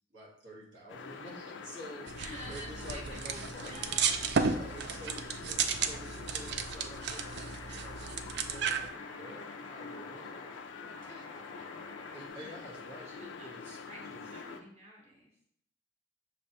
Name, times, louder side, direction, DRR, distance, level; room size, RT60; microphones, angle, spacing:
voice 1, 0.1-2.2 2.5-4.0 4.4-10.4 10.8-11.2 12.1-14.6, equal, 80° right, -5 dB, 1.6 m, -49 dB
sound 1, 0.9-14.6, left 5 dB, 70° left, 0.4 m, -46 dB
sound 2, 2.1-8.9, right 6 dB, 65° right, 0.4 m, -34 dB
voice 2, 2.2-4.1 4.9-5.5 11.5-11.7 12.4-12.5 13.0-13.5 13.9-15.5, equal, 35° right, -4 dB, 0.8 m, -50 dB
sound 3, 6.6-12.3, left 3 dB, 20° left, 0.5 m, -51 dB
5.7 x 3.3 x 2.7 m, 0.68 s
head